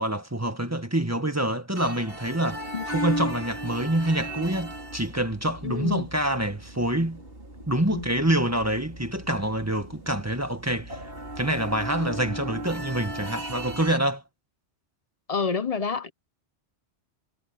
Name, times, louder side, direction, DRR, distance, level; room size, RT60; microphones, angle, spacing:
voice 1, 0.0-7.2 7.7-11.0 11.4-14.2, right 1 dB, 15° right, 1.7 m, -26 dB
sound 1, 1.8-14.0, right 1 dB, 55° right, 4.8 m, -37 dB
voice 2, 5.6-6.0 7.9-8.1 15.3-16.1, left 5 dB, 35° left, 0.8 m, -28 dB
omnidirectional pair, 1.2 m